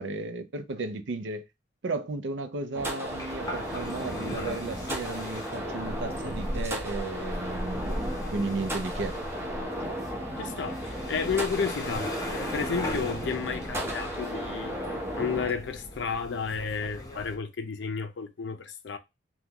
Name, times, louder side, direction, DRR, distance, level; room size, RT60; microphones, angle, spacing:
voice 1, 0.0-1.4 1.8-9.1, right 3 dB, 70° right, 0.5 m, -34 dB
sound 1, 2.7-15.5, equal, 15° right, 0.7 m, -35 dB
sound 2, 3.0-17.4, equal, 20° left, 0.8 m, -38 dB
voice 2, 10.4-12.1 12.4-14.8 15.1-19.0, left 5 dB, 65° left, 0.5 m, -32 dB
3.6 x 2.3 x 2.8 m
head